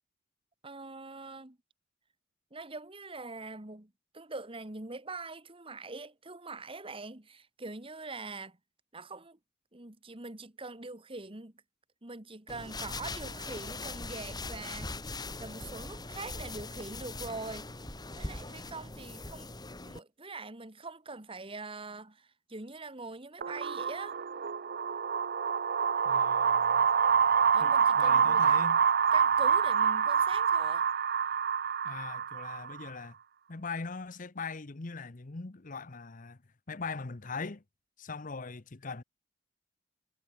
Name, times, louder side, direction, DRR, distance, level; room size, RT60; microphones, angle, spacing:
voice 1, 0.6-1.6 2.5-8.6 8.9-9.4 9.7-11.5 12.0-15.0 15.4-17.8 18.2-19.5 19.8-24.2 27.5-28.6 29.1-30.8, right 3 dB, 30° right, 1.9 m, -43 dB
sound 1, 12.5-20.0, left 3 dB, 20° left, 2.4 m, -41 dB
sound 2, 23.4-32.9, right 7 dB, 50° right, 0.6 m, -27 dB
voice 2, 26.0-26.9 27.6-28.8 31.8-33.2 33.5-36.4 36.7-37.6 38.0-39.0, left 4 dB, 45° left, 0.9 m, -41 dB
head